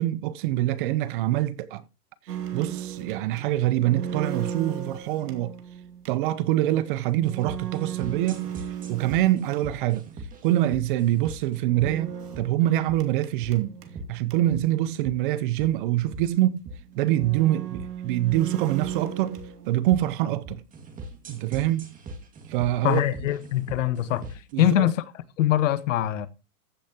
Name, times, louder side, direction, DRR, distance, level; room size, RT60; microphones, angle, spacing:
voice 1, 0.0-1.8 2.3-5.5 6.1-8.4 8.9-10.0 10.4-13.7 14.1-16.6 17.0-19.4 19.7-20.6 21.3-21.9 22.5-23.0 24.5-24.9, right 14 dB, 35° right, 0.7 m, -25 dB
sound 1, 2.3-10.1 11.6-14.7 15.0-15.1 15.4-15.5 16.2-16.3 16.9-20.1 20.4-21.5, right 9 dB, 80° right, 2.7 m, -36 dB
sound 2, 7.2-24.5, right 1 dB, 15° right, 2.2 m, -42 dB
voice 2, 22.8-24.3 24.6-25.0 25.4-26.3, left 13 dB, 55° left, 1.3 m, -23 dB
15.0 x 8.5 x 2.9 m
hypercardioid pair, 135°, 46 cm